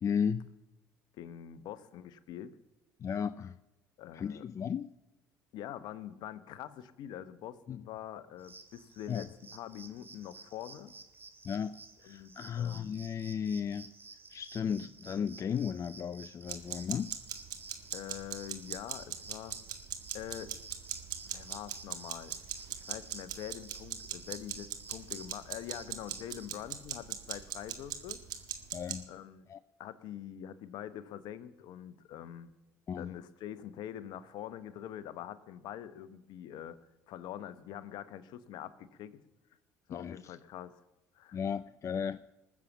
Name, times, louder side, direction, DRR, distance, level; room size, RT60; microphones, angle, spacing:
voice 1, 0.0-0.5 3.0-3.6 4.1-4.9 7.7-7.8 9.1-9.3 11.4-13.9 14.3-17.1 28.7-29.1 29.5-29.6 32.9-33.1 39.9-40.4 41.3-42.2, left 7 dB, 40° left, 0.4 m, -35 dB
voice 2, 1.2-2.6 4.0-4.4 5.5-10.9 12.0-13.0 14.6-14.9 17.9-19.6 20.1-20.5 21.3-22.3 22.7-28.2 29.1-29.5 29.8-32.5 33.0-36.8 37.1-39.2 39.9-40.8 41.1-41.4, left 11 dB, 65° left, 1.0 m, -44 dB
sound 1, 8.4-26.5, right 4 dB, 25° right, 2.2 m, -53 dB
sound 2, 16.5-28.9, right 10 dB, 60° right, 1.9 m, -40 dB
20.0 x 7.4 x 7.3 m
hypercardioid pair, 65°, 8 cm